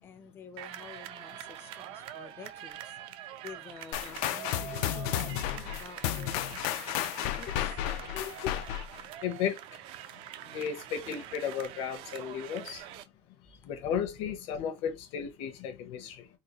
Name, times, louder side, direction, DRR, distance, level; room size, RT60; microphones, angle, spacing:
voice 1, 0.0-3.0 3.4-7.8 13.4-13.5, left 6 dB, 20° left, 0.4 m, -50 dB
sound 1, 0.6-13.1, right 12 dB, 55° right, 0.4 m, -45 dB
sound 2, 3.9-9.0, left 12 dB, 80° left, 0.4 m, -33 dB
voice 2, 8.1-8.5 9.2-9.6 10.5-12.8 13.6-16.3, left 8 dB, 60° left, 0.8 m, -34 dB
3.8 x 2.4 x 3.0 m
cardioid pair, 165°, 11 cm